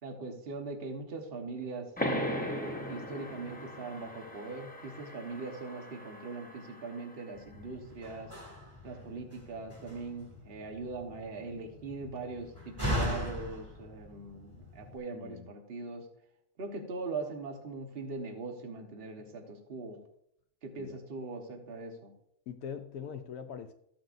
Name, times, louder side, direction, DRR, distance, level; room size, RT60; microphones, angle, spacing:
voice 1, 0.0-8.5 8.8-16.1 16.6-20.0 20.6-22.1, right 3 dB, 45° right, 1.3 m, -41 dB
sound 1, 2.0-7.2, equal, 10° left, 0.8 m, -38 dB
Slam, 7.4-15.0, equal, 10° right, 2.4 m, -39 dB
voice 2, 15.1-15.5 19.2-19.3 20.8-21.0 22.5-23.7, left 7 dB, 90° left, 1.1 m, -42 dB
14.0 x 7.7 x 2.6 m
omnidirectional pair, 1.5 m